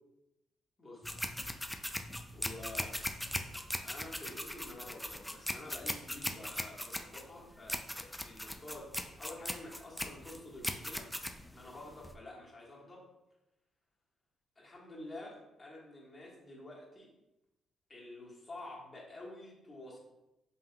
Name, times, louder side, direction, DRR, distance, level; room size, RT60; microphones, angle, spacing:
voice 1, 0.8-1.2 2.3-3.0 3.8-11.1 11.5-13.0 14.5-17.1 17.9-20.0, left 1 dB, 30° left, -4 dB, 1.6 m, -49 dB
sound 1, 1.0-12.1, left 1 dB, 5° left, 0.4 m, -39 dB
5.5 x 3.5 x 2.3 m, 0.94 s
cardioid pair, 90°, 0 cm